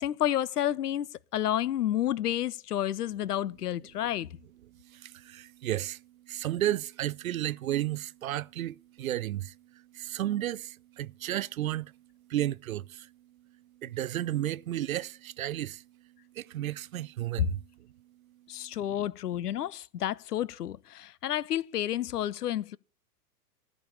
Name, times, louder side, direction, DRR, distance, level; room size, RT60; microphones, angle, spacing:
voice 1, 0.0-4.3 18.5-22.8, left 12 dB, 75° left, 0.6 m, -30 dB
voice 2, 4.8-11.9 12.3-13.1 13.8-15.8 16.4-17.6, right 13 dB, 60° right, 0.5 m, -33 dB
14.5 x 5.3 x 8.3 m
figure-of-eight pair, 110°, 47 cm